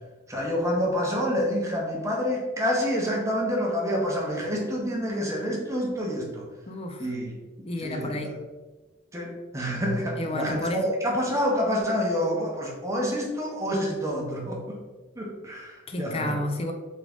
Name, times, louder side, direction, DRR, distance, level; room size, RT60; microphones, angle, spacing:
voice 1, 0.3-6.5 7.0-8.3 9.1-14.8 15.2-16.4, equal, 15° right, -2 dB, 0.8 m, -28 dB
voice 2, 6.7-7.0 7.6-8.3 10.2-10.9 15.9-16.7, left 1 dB, 25° left, 4 dB, 0.4 m, -30 dB
3.7 x 3.6 x 3.4 m, 1.2 s
head